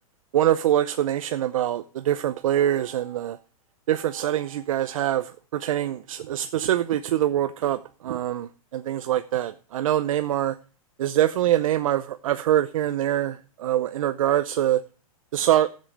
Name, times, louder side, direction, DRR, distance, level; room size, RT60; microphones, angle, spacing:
voice 1, 0.3-3.4 3.9-10.5 11.0-14.8 15.3-15.7, right 12 dB, 65° right, 10 dB, 0.7 m, -24 dB
12.0 x 7.5 x 6.6 m, 0.38 s
hypercardioid pair, 155°, 18 cm